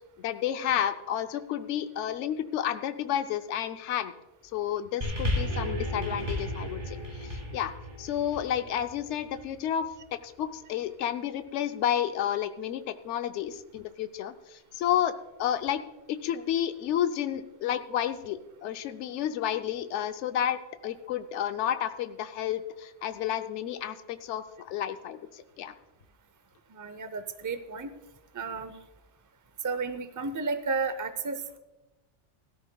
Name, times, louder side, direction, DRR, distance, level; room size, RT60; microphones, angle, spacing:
voice 1, 0.2-4.1 4.5-7.7 8.0-15.1 15.4-15.8 16.1-25.7, left 10 dB, 75° left, 9 dB, 0.9 m, -31 dB
sound 1, 5.0-9.6 10.4-10.5, left 1 dB, 45° right, 2.8 m, -33 dB
voice 2, 26.7-27.9 28.3-28.7 29.6-31.6, right 4 dB, 25° right, 11 dB, 0.4 m, -32 dB
16.5 x 13.5 x 2.2 m, 1.1 s
omnidirectional pair, 1.2 m